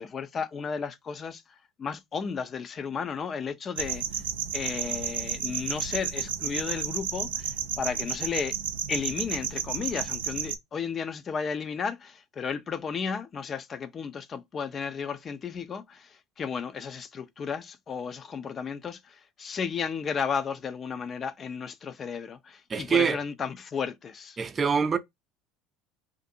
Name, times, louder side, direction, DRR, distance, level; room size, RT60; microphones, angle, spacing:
voice 1, 0.0-1.4 1.8-4.2 4.5-8.6 8.9-24.4, left 6 dB, 35° left, 0.5 m, -33 dB
sound 1, 3.8-10.6, right 9 dB, 85° right, 0.4 m, -32 dB
voice 2, 22.7-23.2 24.4-25.0, right 6 dB, 30° right, 0.5 m, -24 dB
2.5 x 2.5 x 2.6 m
hypercardioid pair, 80°, 0 cm